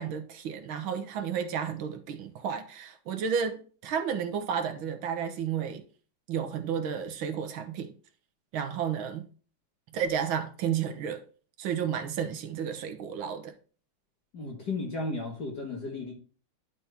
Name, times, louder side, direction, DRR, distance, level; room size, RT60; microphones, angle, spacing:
voice 1, 0.0-5.8 6.3-7.9 8.5-9.2 9.9-11.2 11.6-13.5, right 7 dB, 70° right, 1.8 m, -32 dB
voice 2, 14.3-16.1, left 3 dB, 50° left, 2.0 m, -34 dB
10.5 x 4.3 x 3.5 m
omnidirectional pair, 2.3 m